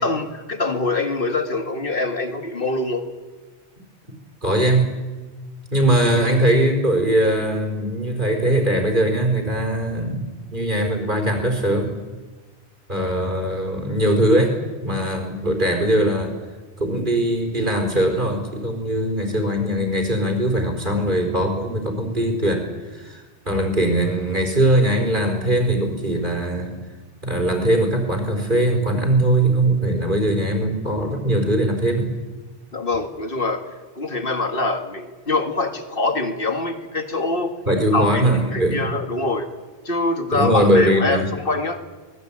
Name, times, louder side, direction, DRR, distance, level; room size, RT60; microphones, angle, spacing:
voice 1, 0.0-3.1 32.7-33.7 34.0-37.5 37.9-39.5 39.8-41.8, left 3 dB, 50° left, 7 dB, 2.2 m, -24 dB
voice 2, 4.4-4.9 5.7-12.0 12.9-14.6 14.8-16.3 16.8-26.7 27.2-32.1 37.7-38.9 40.3-41.2, right 1 dB, 45° right, 5 dB, 4.6 m, -20 dB
25.5 x 20.0 x 8.8 m, 1.3 s
omnidirectional pair, 1.2 m